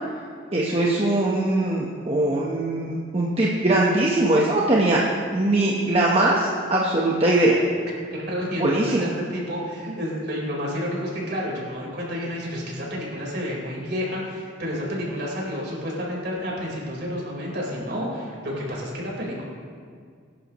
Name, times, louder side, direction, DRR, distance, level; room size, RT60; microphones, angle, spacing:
voice 1, 0.5-5.0 5.3-7.6 8.6-9.0, right 2 dB, 30° right, -4 dB, 1.1 m, -21 dB
voice 2, 7.9-19.4, equal, 55° right, -4 dB, 4.3 m, -30 dB
22.5 x 11.5 x 3.1 m, 2.1 s
head